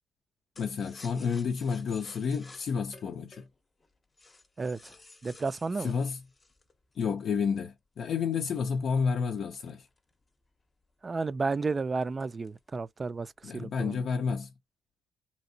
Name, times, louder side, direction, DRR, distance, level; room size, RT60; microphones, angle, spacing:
voice 1, 0.6-3.4 5.8-6.2 7.0-9.9 13.4-14.5, left 6 dB, 60° left, 0.5 m, -30 dB
sound 1, 0.6-7.5 8.0-10.5 10.8-10.9 11.2-11.6 12.0-12.7 13.0-13.6, left 3 dB, 30° left, 0.7 m, -54 dB
voice 2, 4.6-4.9 5.2-5.9 11.0-14.0, right 4 dB, 30° right, 0.3 m, -32 dB
2.9 x 2.8 x 2.7 m
cardioid pair, 90°, 0 cm